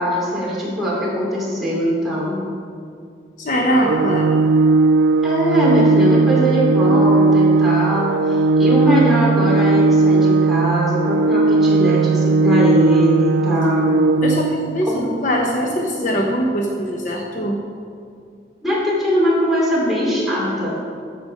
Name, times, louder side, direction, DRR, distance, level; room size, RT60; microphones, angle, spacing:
voice 1, 0.0-2.4 5.2-13.9 14.9-15.0 18.6-20.7, equal, ahead, -7 dB, 3.0 m, -21 dB
voice 2, 3.4-4.4 14.2-17.6, equal, 45° left, 0 dB, 0.9 m, -21 dB
Organ, 3.8-14.8, right 3 dB, 85° right, 0.4 m, -16 dB
13.5 x 5.0 x 6.5 m, 2.3 s
head